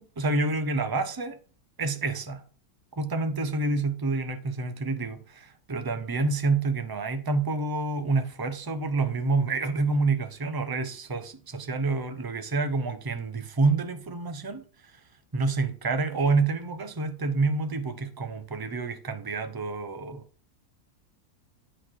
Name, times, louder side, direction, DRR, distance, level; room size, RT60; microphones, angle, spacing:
voice 1, 0.0-1.4 1.8-2.4 3.0-14.6 15.3-20.2, right 3 dB, 25° right, 0.5 m, -28 dB
9.5 x 4.4 x 4.5 m
omnidirectional pair, 1.6 m